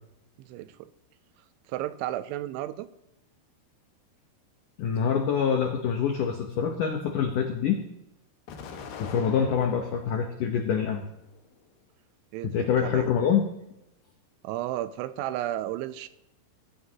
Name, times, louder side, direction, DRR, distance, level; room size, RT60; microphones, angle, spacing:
voice 1, 0.4-0.9 1.7-2.9 12.3-13.1 14.4-16.1, right 13 dB, 85° right, 12 dB, 3.1 m, -33 dB
voice 2, 4.8-7.8 9.0-11.0 12.5-13.5, left 7 dB, 85° left, 4 dB, 1.8 m, -25 dB
Explosion, 8.5-10.1 10.7-11.5, left 6 dB, 65° left, 3.1 m, -43 dB
21.5 x 16.0 x 2.9 m, 0.88 s
omnidirectional pair, 5.3 m